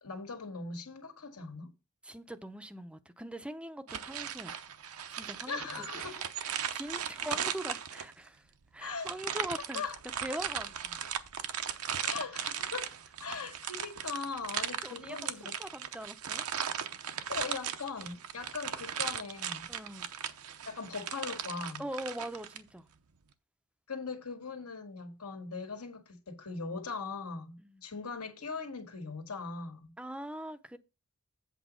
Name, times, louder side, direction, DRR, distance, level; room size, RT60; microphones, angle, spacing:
voice 1, 0.0-1.7 5.5-6.2 7.3-7.4 8.8-9.1 9.7-10.0 11.7-12.9 13.2-15.6 17.3-19.7 20.7-21.8 23.9-29.9, left 4 dB, 80° left, 1.8 m, -40 dB
voice 2, 2.0-4.6 5.1-6.1 6.4-8.5 8.7-9.8 10.2-11.0 14.8-16.4 19.7-20.1 21.8-22.9 27.6-27.9 30.0-30.8, right 1 dB, 5° right, 0.5 m, -42 dB
sound 1, 3.9-8.3 9.0-22.6, right 8 dB, 70° right, 0.7 m, -37 dB
8.2 x 4.0 x 6.2 m
head